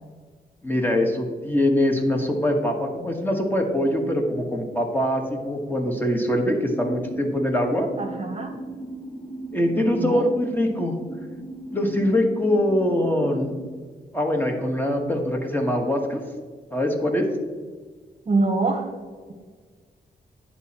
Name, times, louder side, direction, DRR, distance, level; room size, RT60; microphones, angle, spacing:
voice 1, 0.6-7.9 9.5-10.9 11.7-13.5 14.1-16.2 16.7-17.3, left 1 dB, 10° left, 2 dB, 1.2 m, -23 dB
sound 1, 6.7-13.6, right 2 dB, 50° left, 2.0 m, -37 dB
voice 2, 8.0-8.5 9.8-10.3 18.3-18.8, right 3 dB, 40° right, 4 dB, 0.9 m, -25 dB
10.5 x 4.2 x 2.9 m, 1.5 s
cardioid pair, 65°, 17 cm